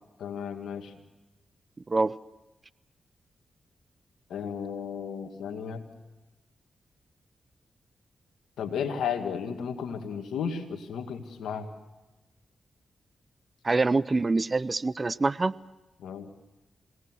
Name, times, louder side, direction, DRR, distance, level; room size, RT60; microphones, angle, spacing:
voice 1, 0.2-0.9 4.3-5.9 8.6-11.7 16.0-16.3, left 7 dB, 85° left, 7 dB, 2.0 m, -34 dB
voice 2, 13.6-15.5, right 3 dB, 40° right, 19 dB, 0.7 m, -25 dB
27.5 x 18.5 x 6.2 m, 1.1 s
supercardioid pair, 45°, 0 cm